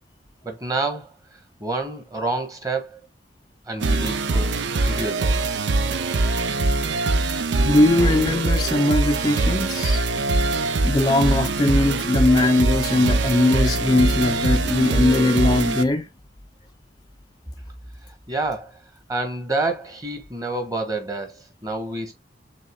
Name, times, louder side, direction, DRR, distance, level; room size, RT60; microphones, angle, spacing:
voice 1, 0.4-1.1 1.6-3.0 3.7-5.4 18.3-18.8 19.1-22.1, right 2 dB, 20° right, 1.2 m, -28 dB
sound 1, 3.8-15.8, right 3 dB, 85° right, 0.6 m, -22 dB
voice 2, 7.5-10.1 10.8-16.1, left 2 dB, 20° left, 0.4 m, -20 dB
6.6 x 3.5 x 2.2 m
head